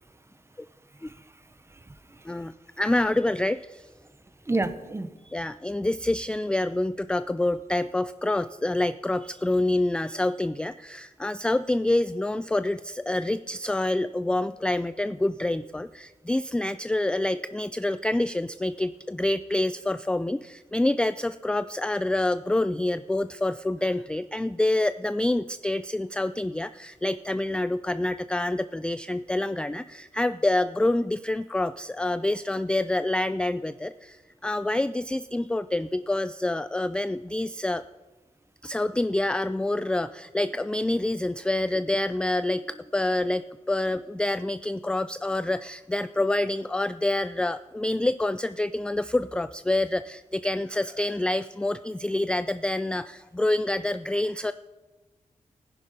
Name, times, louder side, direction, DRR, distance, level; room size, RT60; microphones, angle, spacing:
voice 1, 1.0-2.5 4.4-5.1, right 2 dB, 20° right, 12 dB, 0.9 m, -32 dB
voice 2, 2.3-3.9 5.3-37.8 38.6-54.5, left 1 dB, 5° left, 13 dB, 0.3 m, -27 dB
15.0 x 10.0 x 5.4 m, 1.2 s
cardioid pair, 85°, 14 cm